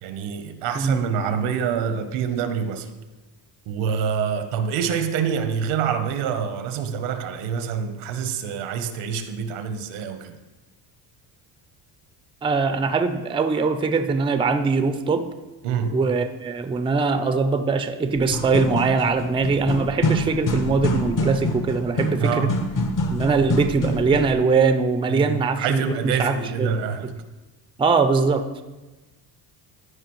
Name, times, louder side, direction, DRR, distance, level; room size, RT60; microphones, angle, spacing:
voice 1, 0.0-2.9 3.7-10.4 15.6-16.0 22.2-22.6 25.1-27.1, right 7 dB, 85° right, 9 dB, 0.9 m, -26 dB
voice 2, 12.4-15.2 15.9-22.5 23.1-26.7 27.0-27.1 27.8-28.4, right 4 dB, 10° right, 9 dB, 0.4 m, -22 dB
sound 1, 18.2-24.4, left 1 dB, 40° left, 1.0 m, -26 dB
14.0 x 5.0 x 3.0 m, 1.1 s
cardioid pair, 100°, 47 cm